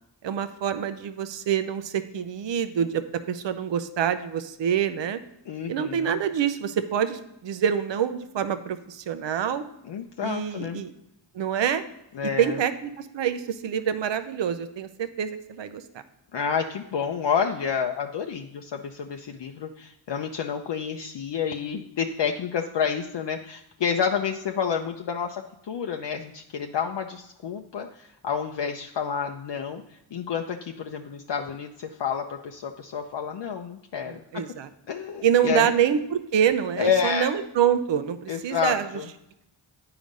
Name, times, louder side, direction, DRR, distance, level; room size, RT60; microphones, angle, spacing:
voice 1, 0.2-5.2 5.7-9.6 10.2-10.9 11.3-11.8 12.2-15.8 34.1-34.7 35.2-38.9, right 8 dB, 60° right, 11 dB, 0.7 m, -26 dB
voice 2, 5.5-6.2 9.8-10.8 12.1-12.6 16.3-34.4 34.9-35.7 36.8-37.3 38.3-39.1, left 7 dB, 60° left, 3 dB, 0.7 m, -29 dB
9.0 x 4.9 x 5.2 m, 0.84 s
cardioid pair, 60°, 48 cm